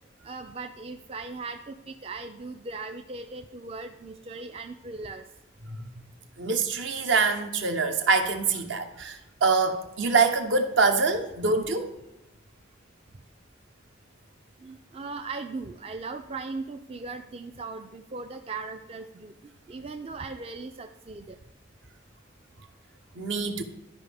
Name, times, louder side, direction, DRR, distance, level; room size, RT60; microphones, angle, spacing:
voice 1, 0.2-5.3 14.6-19.3 19.7-21.4, right 3 dB, 30° right, 0.4 m, -38 dB
voice 2, 5.7-6.0 6.4-11.9 23.2-23.6, right 4 dB, 65° right, 0.9 m, -25 dB
12.0 x 5.1 x 3.4 m
head